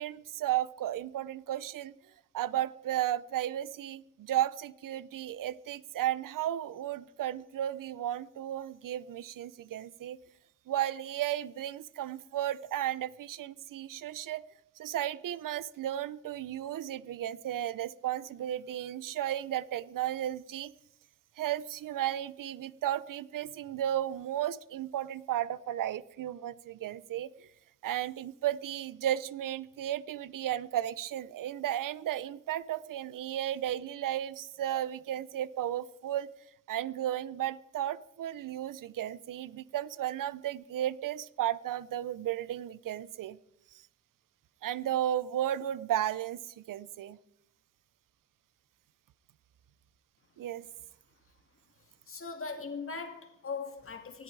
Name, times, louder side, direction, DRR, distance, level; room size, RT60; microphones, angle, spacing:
voice 1, 0.0-1.9 2.3-10.2 10.7-14.4 14.8-20.7 21.4-27.5 27.8-36.3 36.7-43.4 44.6-47.2 50.4-50.7, right 12 dB, 85° right, 18 dB, 0.6 m, -34 dB
voice 2, 52.1-54.2, left 4 dB, 40° left, 5 dB, 2.4 m, -39 dB
19.0 x 13.5 x 4.7 m, 0.80 s
wide cardioid pair, 115°, 32 cm